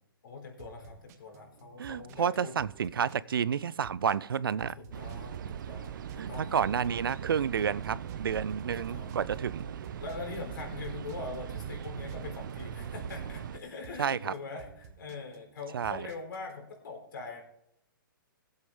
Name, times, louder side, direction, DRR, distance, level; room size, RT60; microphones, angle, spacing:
voice 1, 0.2-2.6 4.8-6.6 6.9-7.0 8.7-9.1 10.0-17.4, left 4 dB, 70° left, 2 dB, 4.0 m, -43 dB
sound 1, 0.6-16.5, right 5 dB, 45° right, 1.6 m, -53 dB
voice 2, 1.8-4.7 6.2-9.7 14.0-14.3 15.7-16.0, right 7 dB, 85° right, 20 dB, 0.5 m, -30 dB
sound 2, 4.9-13.6, right 8 dB, 65° right, 0.8 m, -40 dB
16.5 x 8.1 x 3.7 m, 0.74 s
hypercardioid pair, 135°, 12 cm